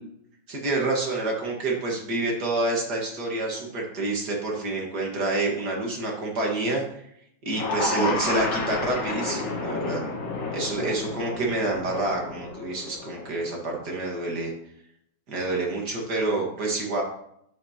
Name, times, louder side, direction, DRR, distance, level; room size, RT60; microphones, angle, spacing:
voice 1, 0.5-7.1 7.5-10.0 10.5-14.5 15.3-17.0, right 2 dB, 55° right, -1 dB, 2.2 m, -28 dB
sound 1, 7.5-13.8, left 3 dB, 80° left, 2.2 m, -31 dB
9.0 x 8.1 x 2.9 m, 0.74 s
omnidirectional pair, 2.3 m